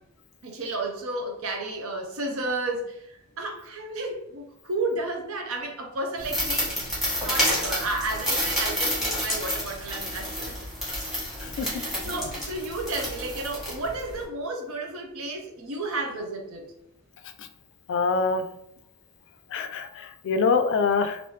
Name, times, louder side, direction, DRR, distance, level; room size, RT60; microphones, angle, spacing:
voice 1, 0.4-10.5 11.5-16.7, right 2 dB, 70° right, 3 dB, 0.7 m, -32 dB
sound 1, 6.2-14.2, equal, ahead, 1.2 m, -29 dB
voice 2, 17.9-18.4 19.5-21.2, left 4 dB, 60° left, 8 dB, 0.3 m, -25 dB
3.1 x 2.6 x 3.1 m, 0.78 s
head